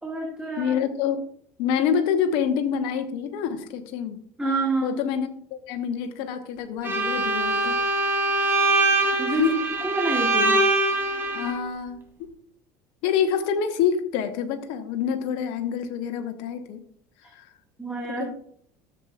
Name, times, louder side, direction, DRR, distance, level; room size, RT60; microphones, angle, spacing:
voice 1, 0.0-0.7 4.4-5.0 9.2-9.4 9.8-10.6 17.8-18.3, right 3 dB, 10° right, -1 dB, 1.9 m, -27 dB
voice 2, 0.6-1.2 1.6-4.2 4.8-7.8 9.3-9.7 11.3-12.4 13.0-16.8 17.3-17.5 18.1-18.3, left 7 dB, 65° left, 8 dB, 1.1 m, -27 dB
Bowed string instrument, 6.8-11.5, right 2 dB, 25° right, 2.9 m, -23 dB
14.0 x 7.1 x 2.4 m, 0.62 s
hypercardioid pair, 75°, 9 cm